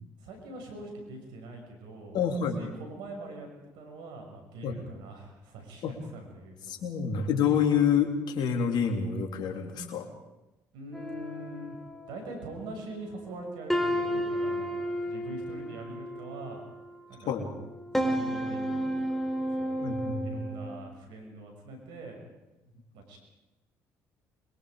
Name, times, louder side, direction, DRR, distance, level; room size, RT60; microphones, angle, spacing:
voice 1, 0.2-6.6 10.7-11.8 12.1-16.6 17.1-17.4 18.0-19.2 19.6-19.9 20.2-22.2 22.9-23.2, right 2 dB, 80° right, 3 dB, 6.5 m, -43 dB
voice 2, 2.1-2.6 4.6-4.7 5.8-5.9 6.7-10.1 17.2-17.5 19.8-20.4, left 7 dB, 70° left, 3 dB, 3.6 m, -27 dB
sound 1, 10.9-12.8 13.2-13.4 13.7-17.0 17.5-20.8, equal, 5° left, 3.9 m, -32 dB
26.0 x 23.0 x 5.2 m, 1.0 s
supercardioid pair, 65°, 8 cm